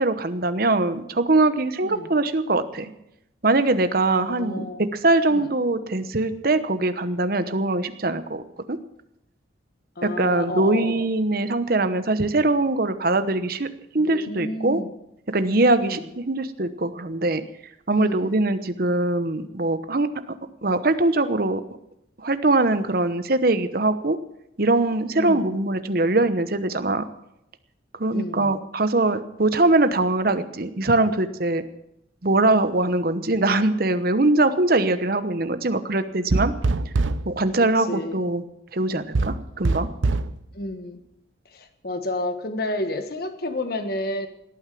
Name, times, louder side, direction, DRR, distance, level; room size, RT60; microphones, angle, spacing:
voice 1, 0.0-2.9 3.4-8.4 8.7-8.8 10.0-13.7 13.9-14.8 15.3-17.4 17.9-20.1 20.6-21.6 22.2-24.2 24.6-27.0 28.0-31.6 32.2-36.5 37.3-38.4 38.7-39.9, right 2 dB, 50° right, 11 dB, 1.0 m, -22 dB
voice 2, 1.8-2.1 4.3-4.9 5.3-5.5 10.0-11.0 13.9-14.9 15.8-16.1 17.9-18.3 25.1-25.5 28.1-28.5 37.6-38.2 40.5-41.0 41.5-44.3, left 1 dB, 55° left, 8 dB, 1.5 m, -31 dB
sound 1, 36.3-37.3 39.1-40.4, right 3 dB, 85° right, 0.7 m, -23 dB
18.0 x 9.2 x 7.6 m, 0.83 s
head